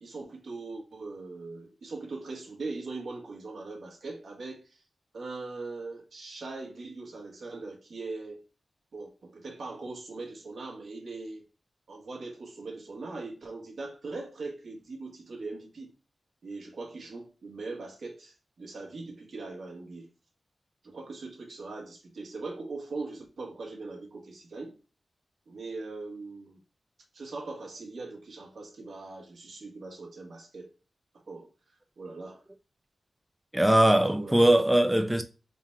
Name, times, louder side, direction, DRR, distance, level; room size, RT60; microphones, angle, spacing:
voice 1, 0.0-4.8 5.1-8.4 8.9-11.4 11.9-15.9 16.4-20.1 20.8-24.8 25.5-26.6 27.1-30.7 31.1-31.5 32.0-32.4 33.5-34.5, right 3 dB, 80° right, 1.3 m, -40 dB
voice 2, 33.5-35.2, right 1 dB, 5° right, 0.5 m, -21 dB
3.8 x 2.3 x 4.3 m
wide cardioid pair, 70°, 0 cm